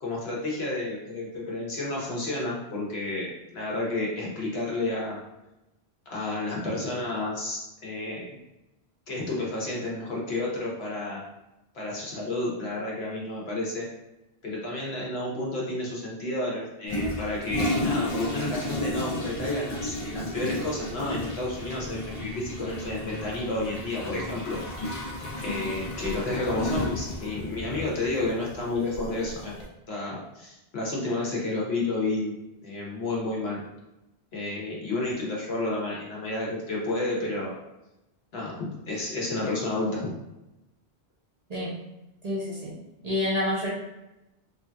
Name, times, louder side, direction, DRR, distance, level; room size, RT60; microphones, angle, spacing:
voice 1, 0.0-5.2 6.1-8.2 9.1-11.2 11.7-13.9 14.4-25.1 25.4-29.5 29.9-32.3 32.6-33.6 34.3-37.5 38.3-40.0, left 2 dB, 70° left, -4 dB, 1.1 m, -31 dB
Toilet flush, 16.9-29.7, left 1 dB, 40° left, 0.5 m, -33 dB
voice 2, 42.2-42.8 43.0-43.7, left 1 dB, 45° right, -5 dB, 0.6 m, -28 dB
3.2 x 2.6 x 2.2 m, 0.94 s
omnidirectional pair, 1.1 m